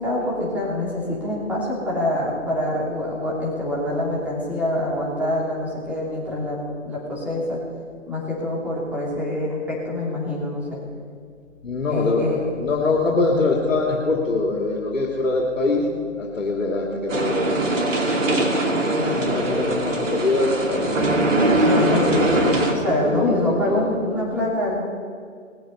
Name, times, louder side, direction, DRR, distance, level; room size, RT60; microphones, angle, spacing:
voice 1, 0.0-6.6 6.8-7.6 8.1-10.8 11.9-12.4 18.9-19.4 21.6-24.8, left 1 dB, 5° right, -6 dB, 2.7 m, -25 dB
voice 2, 11.6-15.9 16.2-17.6 19.0-22.3 22.8-23.8, left 3 dB, 80° left, -1 dB, 2.5 m, -24 dB
sound 1, 17.1-22.7, right 1 dB, 75° right, 2.7 m, -21 dB
20.5 x 8.0 x 5.6 m, 2.1 s
figure-of-eight pair, 150°, 38 cm